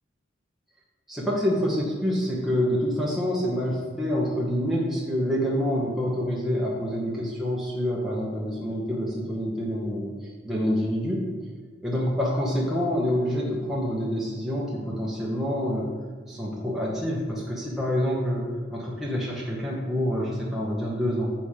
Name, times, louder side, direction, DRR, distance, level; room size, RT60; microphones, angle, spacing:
voice 1, 1.1-11.3 11.8-15.9 16.3-21.3, equal, ahead, -6 dB, 1.0 m, -27 dB
7.8 x 4.2 x 4.9 m, 1.4 s
head